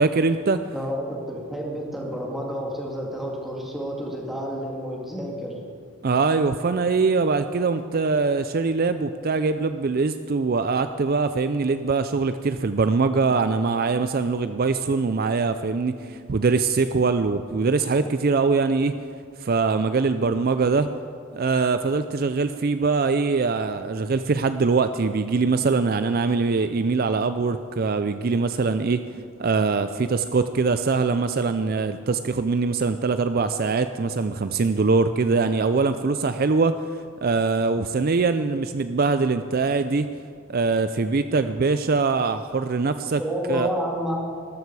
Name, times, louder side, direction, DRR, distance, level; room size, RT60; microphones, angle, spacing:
voice 1, 0.0-0.6 6.0-18.9 19.4-20.9 21.3-29.0 29.4-40.1 40.5-43.2 43.5-43.7, right 4 dB, 45° right, 10 dB, 0.4 m, -23 dB
voice 2, 0.7-5.6 43.2-44.3, equal, ahead, -2 dB, 2.5 m, -30 dB
19.0 x 14.0 x 4.8 m, 2.3 s
head